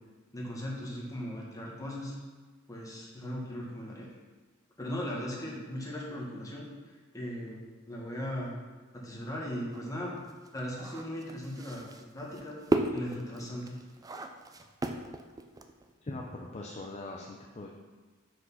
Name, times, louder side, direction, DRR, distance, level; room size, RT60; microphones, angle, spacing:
voice 1, 0.3-2.1 2.7-4.1 4.8-7.6 7.9-8.6 8.9-10.2 10.5-12.6 12.9-13.8, equal, 15° left, -4 dB, 1.5 m, -38 dB
sound 1, 9.7-15.9, right 2 dB, 15° right, 0.4 m, -35 dB
voice 2, 16.0-17.7, left 2 dB, 30° left, 0 dB, 0.6 m, -41 dB
6.2 x 5.1 x 5.5 m, 1.3 s
head